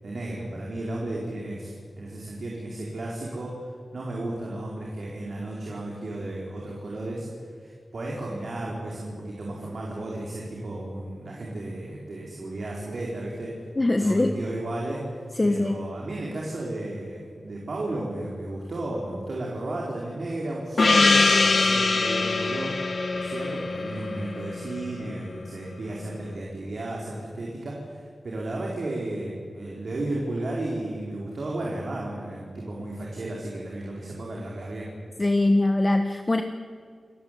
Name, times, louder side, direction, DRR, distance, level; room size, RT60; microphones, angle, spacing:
voice 1, 0.0-7.3 7.6-13.6 14.0-15.0 15.4-22.8 23.1-34.9, right 1 dB, 65° right, -3 dB, 4.8 m, -33 dB
voice 2, 13.8-14.3 15.4-15.8 35.2-36.4, left 2 dB, 25° left, 7 dB, 1.3 m, -22 dB
Gong, 20.8-25.1, left 3 dB, 55° left, 1.5 m, -23 dB
29.0 x 15.0 x 9.3 m, 2.1 s
wide cardioid pair, 100°, 0 cm